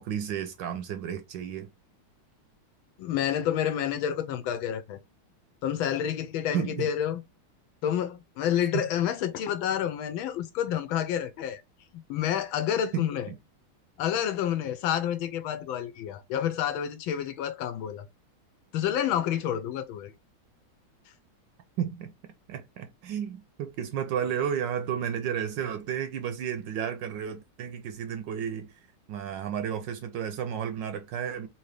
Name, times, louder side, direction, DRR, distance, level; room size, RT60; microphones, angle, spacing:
voice 1, 0.0-1.7 6.5-6.9 8.7-8.9 12.9-13.1 21.8-22.1 22.5-28.7 29.1-31.5, right 8 dB, 75° right, 1.1 m, -32 dB
voice 2, 3.0-5.0 5.6-7.2 7.8-11.6 12.1-13.3 14.0-18.1 18.7-20.1, left 10 dB, 80° left, 1.4 m, -29 dB
3.8 x 2.8 x 3.2 m
omnidirectional pair, 2.3 m